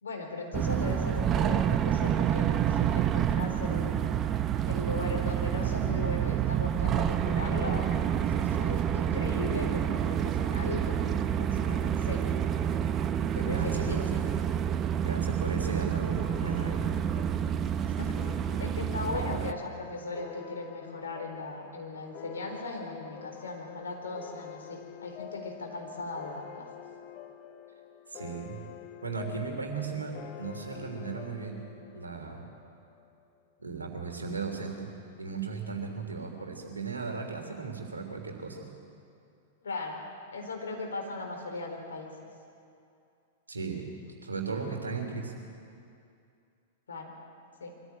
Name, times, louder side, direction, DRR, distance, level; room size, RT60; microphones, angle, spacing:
voice 1, 0.0-4.0 4.7-7.9 8.2-12.4 13.3-14.0 17.8-18.1 18.6-26.7 39.6-40.0 40.3-42.1 46.9-47.1 47.6-47.7, left 3 dB, 70° left, 2 dB, 4.2 m, -38 dB
sound 1, 0.5-19.5, right 9 dB, 30° right, 0.8 m, -28 dB
voice 2, 13.4-14.2 15.0-16.9 28.1-28.6 29.0-31.6 31.9-32.5 33.6-34.9 35.2-38.6 43.5-43.9 44.2-45.4, right 5 dB, 80° right, 2 dB, 3.3 m, -36 dB
sound 2, 16.1-33.2, left 10 dB, 35° left, 1.0 m, -47 dB
23.5 x 14.5 x 8.9 m, 2.5 s
figure-of-eight pair, 100°, 0 cm